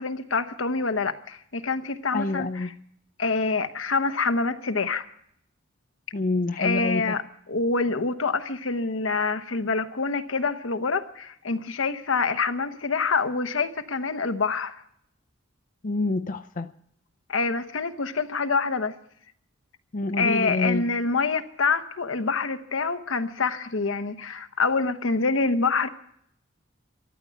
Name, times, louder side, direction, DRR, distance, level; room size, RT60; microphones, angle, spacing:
voice 1, 0.0-2.7 3.2-5.1 6.6-7.2 7.5-14.8 17.3-18.9 20.2-25.9, left 4 dB, 75° left, 9 dB, 1.0 m, -26 dB
voice 2, 2.1-2.7 6.1-7.2 15.8-16.7 19.9-20.8, left 2 dB, 45° left, 6 dB, 0.6 m, -27 dB
13.5 x 12.0 x 8.1 m, 0.70 s
head